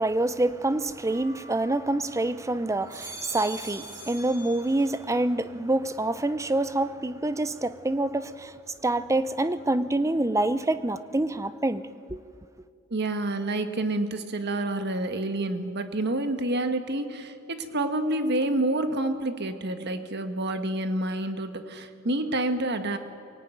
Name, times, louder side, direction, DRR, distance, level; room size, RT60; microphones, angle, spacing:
voice 1, 0.0-8.5 8.8-11.8 12.1-12.2, right 2 dB, 15° right, 0.6 m, -26 dB
sound 1, 1.1-2.2 2.7-5.1 5.5-6.1, right 2 dB, 40° right, 5.2 m, -44 dB
voice 2, 12.9-23.0, right 1 dB, 55° right, 1.6 m, -28 dB
23.5 x 17.5 x 9.3 m
head